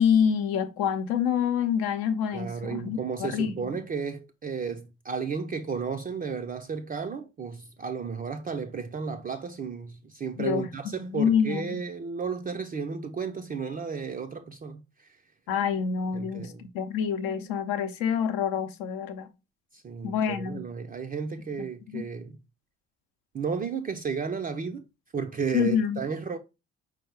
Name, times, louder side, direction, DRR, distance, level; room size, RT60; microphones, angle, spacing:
voice 1, 0.0-3.7 10.4-10.7 11.0-11.8 15.5-19.3 20.0-20.6 21.9-22.1 25.5-26.0, left 7 dB, 70° left, 0.7 m, -27 dB
voice 2, 2.3-15.1 16.1-16.7 19.7-22.4 23.3-24.8 25.1-26.4, right 5 dB, 25° right, 0.4 m, -33 dB
4.7 x 2.0 x 4.4 m
hypercardioid pair, 50°, 36 cm